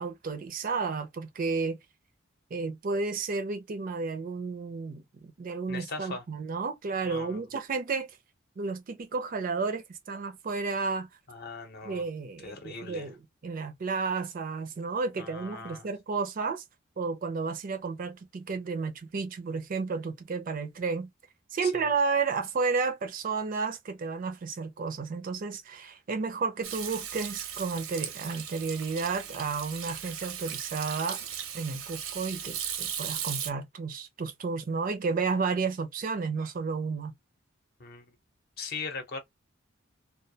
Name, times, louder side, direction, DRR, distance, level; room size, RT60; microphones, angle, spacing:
voice 1, 0.0-1.8 2.5-8.1 8.6-11.1 11.8-13.2 13.4-16.6 17.0-21.1 21.5-31.2 31.5-37.1, right 4 dB, 45° right, 0.4 m, -32 dB
voice 2, 5.7-6.2 7.0-7.4 11.3-12.1 12.4-13.1 15.2-15.9 21.6-21.9 37.8-38.0 38.6-39.2, left 4 dB, 50° left, 0.7 m, -39 dB
Hands / Sink (filling or washing), 26.6-33.5, right 9 dB, 85° right, 0.6 m, -37 dB
2.2 x 2.1 x 2.6 m
head